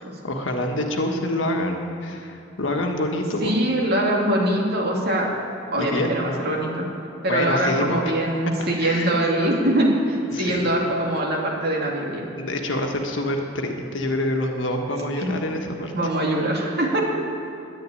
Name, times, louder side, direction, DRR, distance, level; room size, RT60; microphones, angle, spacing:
voice 1, 0.2-3.5 5.8-6.1 7.3-8.0 8.8-9.5 10.3-10.6 12.4-15.9, left 1 dB, 70° left, 3 dB, 1.5 m, -26 dB
voice 2, 3.4-5.3 5.7-6.9 7.2-12.3 15.2-15.3 15.9-17.0, right 1 dB, 55° right, -2 dB, 2.6 m, -23 dB
10.5 x 10.0 x 9.8 m, 2.7 s
head